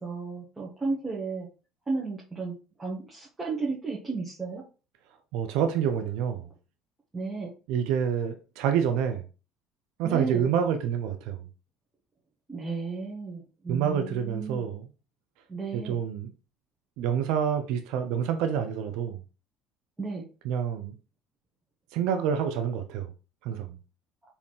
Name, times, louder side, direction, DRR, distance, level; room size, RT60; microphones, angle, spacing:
voice 1, 0.0-1.5 1.9-2.5 2.8-4.6 7.1-7.5 10.0-10.5 12.5-14.6 15.5-16.0 20.0-20.2, right 4 dB, 20° right, 1.5 m, -33 dB
voice 2, 5.3-6.5 7.7-9.2 10.0-11.4 13.7-14.8 15.7-16.3 17.0-19.2 20.4-20.9 21.9-23.1 23.4-23.8, right 8 dB, 70° right, 0.6 m, -27 dB
4.4 x 3.4 x 3.3 m
hypercardioid pair, 65°, 0 cm